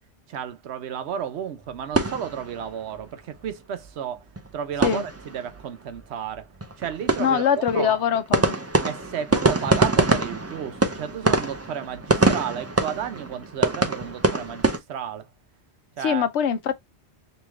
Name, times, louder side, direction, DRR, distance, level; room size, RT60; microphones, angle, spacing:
voice 1, 0.3-4.3 4.5-6.5 6.8-8.0 8.8-15.3 16.0-16.3, right 8 dB, 70° right, 0.8 m, -32 dB
sound 1, 1.6-3.1 3.4-3.5 3.8-3.9 4.2-5.6 5.9-6.0 6.3-14.8, right 2 dB, 20° right, 0.4 m, -25 dB
voice 2, 7.2-8.6 16.0-16.7, left 8 dB, 80° left, 0.9 m, -23 dB
3.1 x 2.9 x 3.4 m
omnidirectional pair, 1.2 m